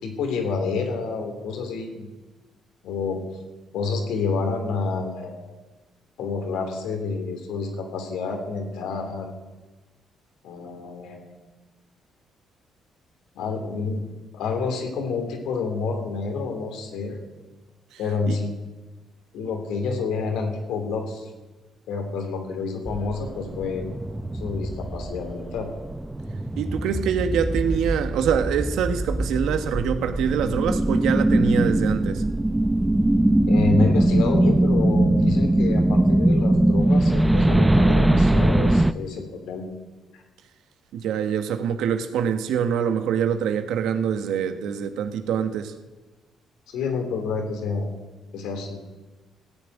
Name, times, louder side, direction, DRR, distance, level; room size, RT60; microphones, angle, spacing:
voice 1, 0.0-2.1 2.8-3.2 3.7-5.4 6.2-9.3 10.4-11.3 13.3-14.0 14.3-17.2 18.0-18.5 19.3-21.3 21.9-23.8 24.3-25.7 33.5-39.7 40.1-40.2 46.7-47.9 48.3-48.8, left 4 dB, 85° left, 4 dB, 2.9 m, -28 dB
sound 1, 22.9-38.9, right 1 dB, 10° right, 0.5 m, -21 dB
voice 2, 26.6-32.2 40.9-45.7, right 7 dB, 80° right, 9 dB, 1.2 m, -25 dB
16.0 x 7.4 x 9.0 m, 1.2 s
cardioid pair, 100°, 0 cm